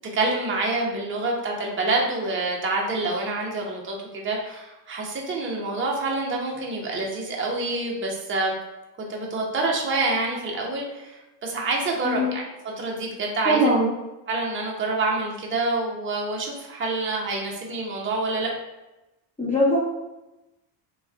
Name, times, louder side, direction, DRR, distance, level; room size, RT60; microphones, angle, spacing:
voice 1, 0.1-8.5 9.0-12.4 12.8-13.7 14.3-18.5, right 2 dB, 25° right, -2 dB, 0.8 m, -27 dB
voice 2, 12.0-12.4 13.4-13.9 19.4-19.8, equal, 15° left, -6 dB, 0.7 m, -21 dB
3.0 x 2.3 x 3.5 m, 1.0 s
cardioid pair, 115°, 50 cm